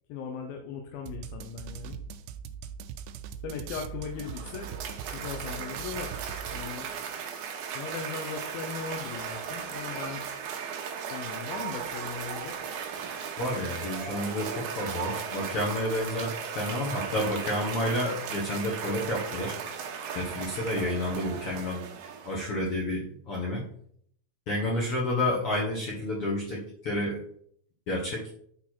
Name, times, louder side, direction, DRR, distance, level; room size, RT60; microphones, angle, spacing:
voice 1, 0.1-2.0 3.4-4.7 5.1-6.2 6.5-6.9 7.7-10.2 11.1-12.6, left 6 dB, 75° left, 3 dB, 2.4 m, -38 dB
sound 1, 1.1-6.9, right 7 dB, 90° right, 2.6 m, -41 dB
Cheering / Applause, 4.0-22.6, right 7 dB, 70° right, 2.0 m, -37 dB
voice 2, 13.4-19.5 20.1-21.8 22.2-23.6 24.5-27.2 27.9-28.3, left 1 dB, 60° left, -4 dB, 1.5 m, -30 dB
9.5 x 4.2 x 4.4 m, 0.63 s
omnidirectional pair, 4.5 m